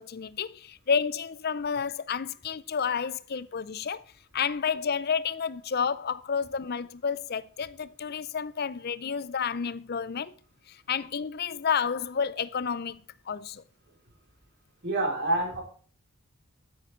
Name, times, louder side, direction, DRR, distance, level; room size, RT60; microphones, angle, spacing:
voice 1, 0.0-4.0 4.3-10.3 10.7-13.0 13.3-13.6, left 6 dB, 45° left, 0.5 m, -30 dB
voice 2, 14.8-15.6, right 2 dB, 50° right, 4.3 m, -27 dB
14.0 x 8.0 x 4.5 m
head